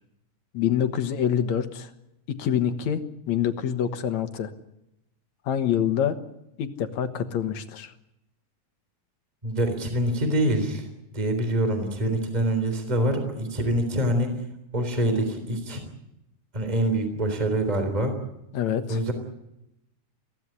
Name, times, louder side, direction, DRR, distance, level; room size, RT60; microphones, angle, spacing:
voice 1, 0.5-1.9 2.3-3.0 3.3-4.5 5.5-6.2 6.6-7.9 18.5-19.0, left 9 dB, 70° left, 9 dB, 2.6 m, -26 dB
voice 2, 9.4-10.9 11.1-14.4 14.7-15.8 16.5-18.1 18.9-19.1, right 1 dB, 15° right, 7 dB, 3.5 m, -25 dB
23.0 x 16.5 x 9.9 m, 0.85 s
omnidirectional pair, 3.4 m